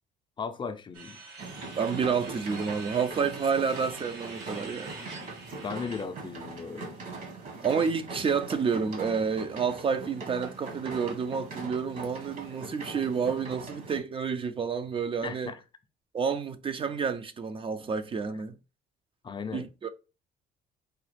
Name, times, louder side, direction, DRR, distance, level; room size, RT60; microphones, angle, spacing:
voice 1, 0.4-1.2 5.6-7.0 15.2-15.6 19.2-19.7, left 5 dB, 30° left, 0.4 m, -36 dB
sound 1, 0.9-6.0, right 3 dB, 85° right, 1.5 m, -45 dB
sound 2, 1.4-14.0, right 3 dB, 55° right, 1.4 m, -41 dB
voice 2, 1.8-5.0 7.6-15.5 16.1-18.6 19.5-19.9, right 6 dB, 30° right, 0.4 m, -29 dB
4.9 x 2.3 x 3.2 m
cardioid pair, 110°, 17 cm